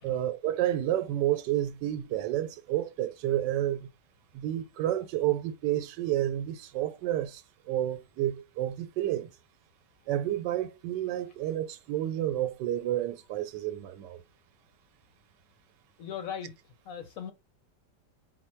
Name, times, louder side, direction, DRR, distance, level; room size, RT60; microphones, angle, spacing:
voice 1, 0.0-3.9 4.3-9.3 10.1-14.2, right 13 dB, 85° right, 1.2 m, -30 dB
voice 2, 16.0-16.5 16.8-17.3, left 8 dB, 60° left, 1.0 m, -38 dB
4.7 x 2.1 x 4.3 m
omnidirectional pair, 1.9 m